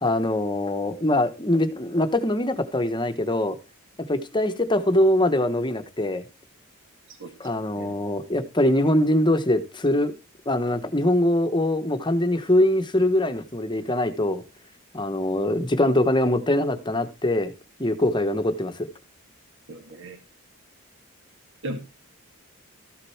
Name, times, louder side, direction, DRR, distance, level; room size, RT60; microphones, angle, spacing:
voice 1, 0.0-3.6 4.1-6.2 7.4-10.1 10.5-14.4 14.9-17.5 17.8-18.9, left 1 dB, 20° left, 9 dB, 1.2 m, -23 dB
voice 2, 19.7-20.2 21.6-21.8, right 1 dB, 55° right, 5 dB, 2.2 m, -35 dB
14.0 x 6.8 x 4.5 m, 0.28 s
head